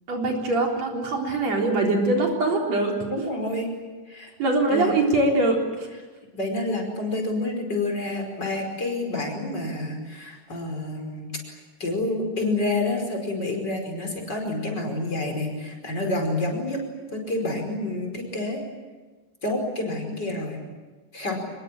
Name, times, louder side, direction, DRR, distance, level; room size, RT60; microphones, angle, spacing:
voice 1, 0.1-3.0 4.4-5.9, right 2 dB, 65° right, 0 dB, 4.9 m, -23 dB
voice 2, 3.1-3.7 4.1-4.3 4.7-5.0 6.3-16.8 17.1-18.6 19.4-20.6 21.1-21.4, left 2 dB, 35° left, 2 dB, 5.7 m, -28 dB
25.5 x 22.5 x 9.0 m, 1.3 s
omnidirectional pair, 3.3 m